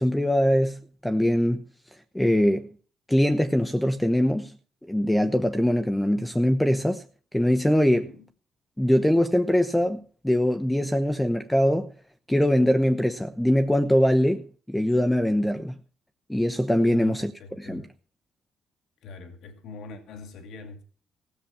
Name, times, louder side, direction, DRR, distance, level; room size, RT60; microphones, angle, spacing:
voice 1, 0.0-1.6 2.1-2.7 3.1-4.5 4.9-7.0 7.3-8.1 8.8-11.9 12.3-15.8 16.3-17.3 17.6-17.9, equal, 5° left, 0.9 m, -22 dB
voice 2, 7.9-8.3 16.8-17.9 19.0-20.8, left 3 dB, 80° left, 2.2 m, -44 dB
16.0 x 7.0 x 7.1 m
cardioid pair, 90°, 0 cm